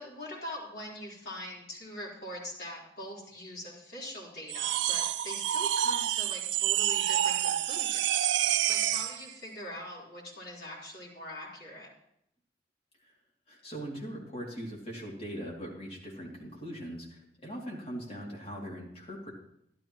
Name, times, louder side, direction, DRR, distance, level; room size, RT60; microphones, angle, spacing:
voice 1, 0.0-8.3 8.7-11.9, left 1 dB, 60° left, -5 dB, 3.9 m, -43 dB
sound 1, 4.5-9.2, right 11 dB, 85° right, 0.4 m, -28 dB
voice 2, 13.5-19.3, equal, 35° left, -3 dB, 2.7 m, -40 dB
12.5 x 12.0 x 3.0 m, 0.75 s
head